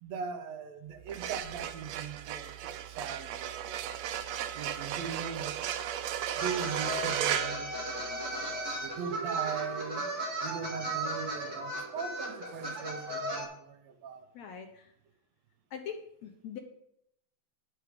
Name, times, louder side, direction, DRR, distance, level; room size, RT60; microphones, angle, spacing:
voice 1, 0.0-3.9 4.5-5.6 6.4-10.1 10.4-14.3, right 6 dB, 65° right, 1.8 m, -40 dB
sound 1, 1.0-8.4, right 11 dB, 90° right, 1.5 m, -35 dB
sound 2, 6.4-13.4, right 1 dB, 50° right, 4.2 m, -36 dB
voice 2, 14.3-14.9 15.7-16.6, left 7 dB, 65° left, 1.9 m, -42 dB
11.0 x 8.0 x 5.1 m
omnidirectional pair, 3.9 m